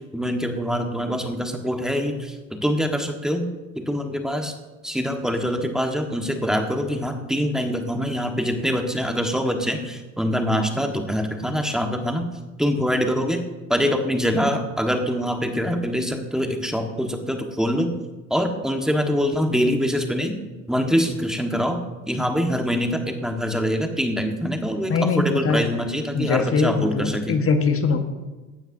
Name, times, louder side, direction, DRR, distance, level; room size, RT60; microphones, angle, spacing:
voice 1, 0.0-3.5 3.7-4.5 4.8-12.3 12.6-13.4 13.7-17.9 18.3-20.3 20.7-21.8 22.1-27.4, equal, ahead, 4 dB, 1.4 m, -24 dB
voice 2, 24.9-25.6 26.1-28.0, left 4 dB, 35° left, 6 dB, 1.5 m, -21 dB
14.5 x 9.0 x 2.7 m, 1.2 s
hypercardioid pair, 70°, 38 cm